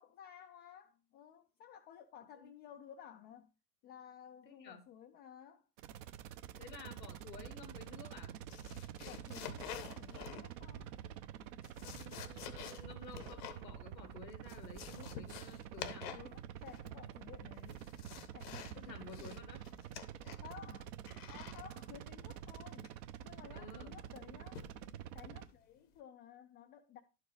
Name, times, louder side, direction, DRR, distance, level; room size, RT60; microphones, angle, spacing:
voice 1, 0.0-3.5 3.8-5.7 9.0-10.9 16.1-17.8 18.3-19.5 20.4-20.9 21.3-23.0 23.2-24.6 25.1-27.0, left 9 dB, 20° left, 0.4 m, -55 dB
voice 2, 4.4-4.8 6.6-8.4 11.8-16.1 18.7-19.6 23.5-24.0, left 4 dB, 80° left, 1.4 m, -52 dB
sound 1, 5.8-25.5, right 10 dB, 50° right, 0.8 m, -48 dB
sound 2, 8.5-10.7 11.4-13.7 14.0-14.1 14.3-16.3 16.6-17.1 17.5-18.8 19.1-20.5 21.1-21.6 22.8-23.2 24.5-24.9 25.3-25.6, left 9 dB, 65° left, 1.0 m, -49 dB
11.5 x 4.7 x 3.3 m
figure-of-eight pair, 85°, 50 cm